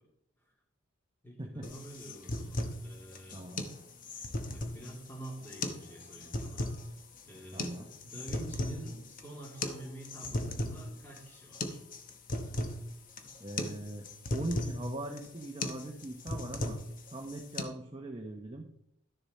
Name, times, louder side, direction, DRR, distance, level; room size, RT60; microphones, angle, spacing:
voice 1, 1.2-3.4 4.5-6.7 7.2-11.8, right 1 dB, 10° left, -3 dB, 2.8 m, -47 dB
sound 1, 1.6-17.6, left 2 dB, 40° left, 1.0 m, -38 dB
voice 2, 3.3-3.7 7.5-7.9 13.4-14.0 14.3-16.8 17.1-18.7, right 1 dB, 25° right, 2 dB, 0.8 m, -40 dB
12.0 x 6.8 x 4.2 m, 0.76 s
head